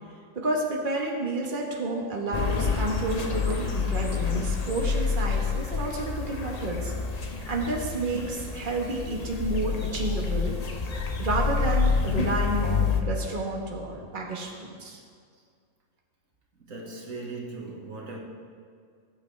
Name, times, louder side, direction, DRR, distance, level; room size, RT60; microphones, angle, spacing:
voice 1, 0.4-10.6 11.2-15.0, right 2 dB, 40° right, -1 dB, 1.6 m, -30 dB
sound 1, 2.3-13.0, left 5 dB, 35° left, 0.7 m, -28 dB
voice 2, 16.6-18.2, right 3 dB, 85° right, -1 dB, 2.1 m, -39 dB
19.5 x 8.7 x 3.4 m, 2.1 s
omnidirectional pair, 1.4 m